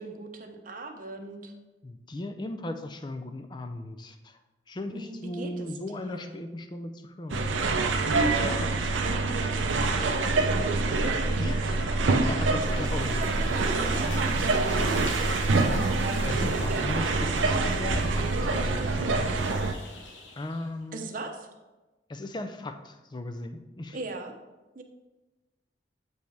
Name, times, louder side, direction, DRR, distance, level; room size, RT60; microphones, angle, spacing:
voice 1, 0.0-1.5 4.9-6.4 8.2-11.4 13.2-13.3 13.6-15.0 16.3-16.9 20.9-21.5 23.9-24.3 24.7-24.8, right 2 dB, 45° right, 4 dB, 0.7 m, -38 dB
voice 2, 1.8-4.4 4.7-7.6 8.4-8.7 11.4-13.2 14.0-14.5 15.5-19.4 20.4-21.0 22.1-24.0, left 1 dB, 25° left, 7 dB, 0.4 m, -37 dB
sound 1, 7.3-19.7, right 3 dB, 90° right, 0.6 m, -26 dB
sound 2, 12.3-20.8, left 2 dB, 90° left, 1.1 m, -43 dB
7.7 x 5.4 x 3.4 m, 1.1 s
head